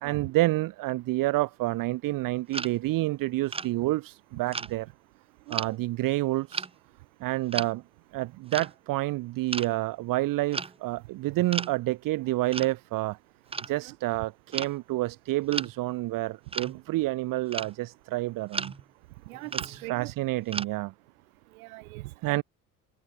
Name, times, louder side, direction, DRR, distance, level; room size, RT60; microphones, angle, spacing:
voice 1, 0.0-4.9 5.5-6.7 7.2-7.8 8.1-13.2 13.7-18.7 19.6-20.9 22.2-22.4, right 18 dB, 45° right, 0.9 m, -29 dB
sound 1, 2.5-2.7 3.5-3.7 4.5-4.7 5.5-5.7 6.5-6.7 7.5-7.7 8.5-8.7 9.5-9.7 10.5-10.8 11.5-11.7 12.5-12.7 13.5-13.7 14.5-14.7 15.5-15.7 16.5-16.8 17.5-17.7 18.5-18.8 19.3-20.1 20.5-20.7, right 4 dB, 15° right, 0.8 m, -34 dB
voice 2, 19.3-20.1 21.5-22.4, right 22 dB, 70° right, 1.0 m, -41 dB
hypercardioid pair, 65°, 44 cm